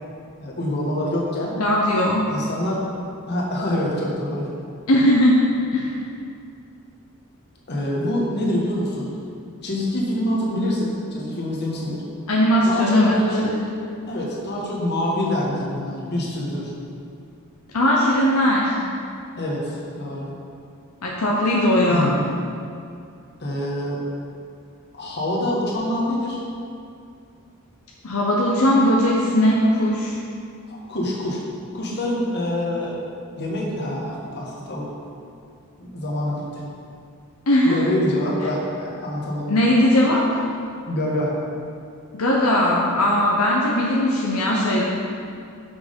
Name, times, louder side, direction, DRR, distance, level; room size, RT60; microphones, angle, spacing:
voice 1, 0.4-1.6 2.3-2.9 3.3-4.5 7.7-9.1 9.6-12.0 12.7-13.5 14.1-16.7 19.4-20.3 21.9-22.2 23.4-24.0 25.0-26.4 30.7-31.4 31.7-33.0 33.4-34.9 35.8-36.6 37.6-39.5 40.8-41.3, left 1 dB, 50° left, -3 dB, 1.5 m, -26 dB
voice 2, 1.6-2.3 4.9-6.0 12.3-13.5 17.7-18.7 21.0-22.1 28.0-30.1 37.5-37.9 39.5-40.4 42.1-44.8, left 1 dB, 75° left, -4 dB, 0.8 m, -19 dB
6.0 x 6.0 x 5.3 m, 2.5 s
head